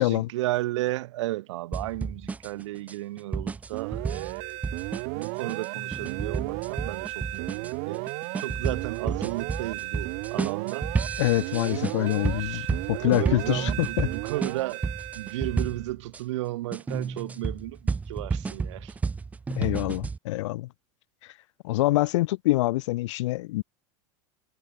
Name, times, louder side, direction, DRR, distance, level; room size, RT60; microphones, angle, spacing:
voice 1, 0.0-4.6 5.1-8.1 8.4-10.9 11.7-11.8 12.4-14.9 15.1-19.0, right 17 dB, 80° right, 3.0 m, -34 dB
sound 1, 1.7-16.2 16.7-20.2, right 4 dB, 10° right, 1.9 m, -32 dB
sound 2, 3.7-15.9, right 40 dB or more, 45° right, 1.0 m, -34 dB
voice 2, 11.2-12.6 12.9-14.1 19.5-20.7 21.6-23.6, left 18 dB, 80° left, 0.7 m, -25 dB
supercardioid pair, 175°, 15 cm